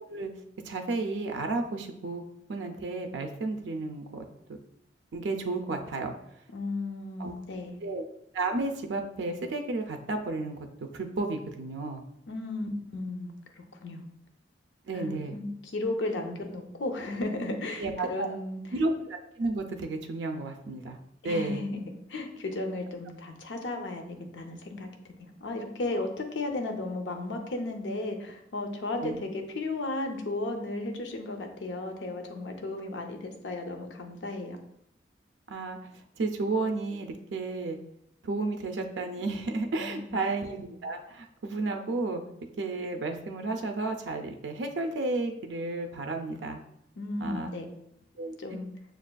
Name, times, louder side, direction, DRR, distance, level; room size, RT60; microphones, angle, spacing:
voice 1, 0.6-2.2 2.5-4.2 5.1-6.1 7.2-7.3 7.8-8.0 8.3-12.0 14.9-15.4 17.8-18.3 18.7-21.0 21.2-21.7 29.0-29.2 35.5-37.8 38.2-42.2 42.6-46.6 47.2-47.5 48.2-48.6, right 3 dB, 80° right, 4 dB, 0.4 m, -32 dB
voice 2, 6.5-7.8 12.3-13.3 13.6-14.0 14.9-18.6 21.2-24.9 25.2-34.6 39.7-40.1 47.0-47.7 48.4-48.7, left 2 dB, 90° left, 4 dB, 0.6 m, -34 dB
6.5 x 2.4 x 2.2 m, 0.77 s
head